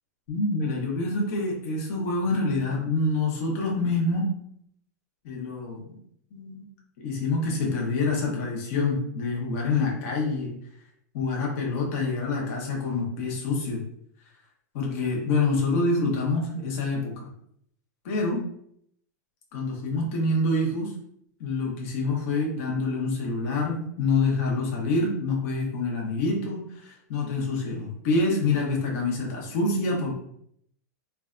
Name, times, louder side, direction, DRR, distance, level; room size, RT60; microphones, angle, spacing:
voice 1, 0.3-4.3 5.2-6.0 6.3-6.6 7.0-10.5 11.1-13.8 14.7-17.3 18.0-18.4 19.5-20.9 21.4-30.1, left 3 dB, 50° left, -2 dB, 0.8 m, -26 dB
2.5 x 2.2 x 2.4 m, 0.68 s
supercardioid pair, 155°, 10 cm